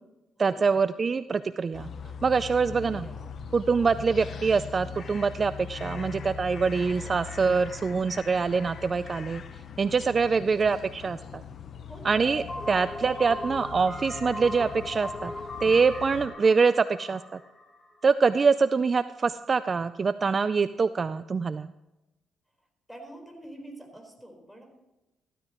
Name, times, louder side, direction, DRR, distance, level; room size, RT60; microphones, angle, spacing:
voice 1, 0.4-1.9 2.2-3.0 3.5-9.4 9.8-11.4 12.0-15.3 15.6-17.4 18.0-21.7, right 5 dB, 40° right, 13 dB, 0.4 m, -24 dB
sound 1, 1.7-16.3, left 7 dB, 55° left, 0.7 m, -41 dB
voice 2, 2.5-3.3 3.7-4.0 5.9-6.1 6.9-7.2 10.2-10.5 11.9-12.3 12.5-12.7 22.9-24.7, right 1 dB, ahead, 1 dB, 4.2 m, -46 dB
sound 2, 12.3-18.1, left 1 dB, 25° left, 3.1 m, -39 dB
14.5 x 13.5 x 3.0 m, 1.0 s
cardioid pair, 90°, 0 cm